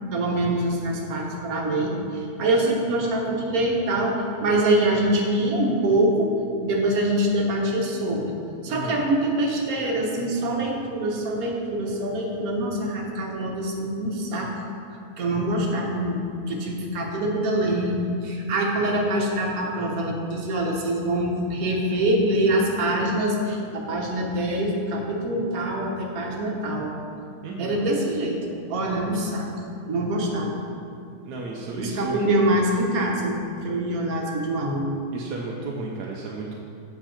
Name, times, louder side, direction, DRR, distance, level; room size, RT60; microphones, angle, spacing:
voice 1, 0.1-6.3 6.6-8.4 8.6-14.5 15.2-16.2 16.5-26.9 27.6-28.4 28.7-29.5 29.8-30.6 31.8-33.4 33.6-34.9, right 1 dB, 65° right, -1 dB, 1.5 m, -24 dB
voice 2, 8.7-9.0 27.4-27.8 31.2-32.2 35.1-36.5, right 3 dB, 80° right, -2 dB, 1.3 m, -33 dB
7.7 x 6.6 x 4.4 m, 2.5 s
omnidirectional pair, 1.7 m